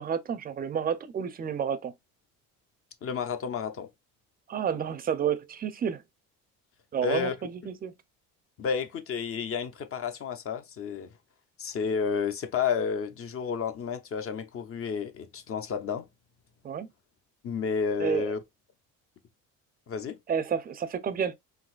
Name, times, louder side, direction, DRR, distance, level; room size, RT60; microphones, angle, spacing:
voice 1, 0.0-1.9 4.5-6.0 6.9-7.9 16.6-16.9 18.0-18.3 20.3-21.3, right 7 dB, 25° right, 0.5 m, -30 dB
voice 2, 3.0-3.9 7.0-7.3 8.6-11.1 11.6-16.1 17.4-18.4 19.9-20.2, left 6 dB, 40° left, 0.7 m, -31 dB
3.9 x 2.7 x 2.4 m
cardioid pair, 110°, 34 cm